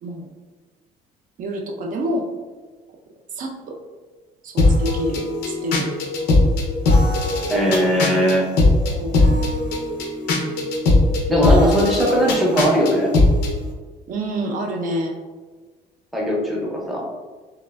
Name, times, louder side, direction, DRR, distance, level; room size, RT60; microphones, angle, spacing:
voice 1, 0.0-0.3 1.4-2.3 3.4-3.8 4.4-5.9 8.9-9.2 11.4-11.7 14.1-15.2, equal, 55° right, 1 dB, 0.5 m, -27 dB
sound 1, 4.6-13.5, left 2 dB, 70° left, 0.6 m, -19 dB
voice 2, 7.5-8.5 11.3-13.1 16.1-17.1, equal, ahead, -3 dB, 0.6 m, -19 dB
3.2 x 2.0 x 2.2 m, 1.3 s
cardioid pair, 110°, 17 cm